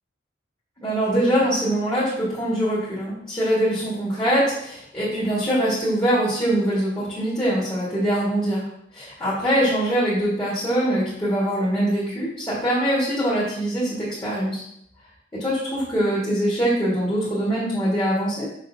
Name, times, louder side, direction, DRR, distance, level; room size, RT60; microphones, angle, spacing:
voice 1, 0.8-8.7 8.9-14.6 15.3-18.5, right 1 dB, 20° left, -9 dB, 1.8 m, -23 dB
6.3 x 5.4 x 2.8 m, 0.75 s
head